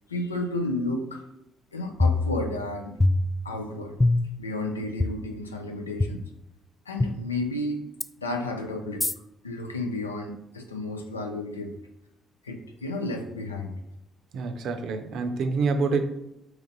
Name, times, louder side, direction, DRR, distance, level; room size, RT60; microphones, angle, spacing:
voice 1, 0.1-1.2 1.7-3.0 3.4-4.0 4.4-6.2 6.9-7.8 8.2-9.1 9.4-11.8 12.4-13.8, left 2 dB, 85° left, 4 dB, 0.4 m, -32 dB
sound 1, 2.0-2.7 3.0-3.6 4.0-4.5 5.0-5.1 6.0-6.1 7.0-7.1 8.0-8.1 9.0-9.1, left 2 dB, 15° left, 0.3 m, -23 dB
voice 2, 14.3-16.0, right 4 dB, 60° right, 6 dB, 0.5 m, -26 dB
3.9 x 2.9 x 3.8 m, 0.87 s
figure-of-eight pair, 40°, 0 cm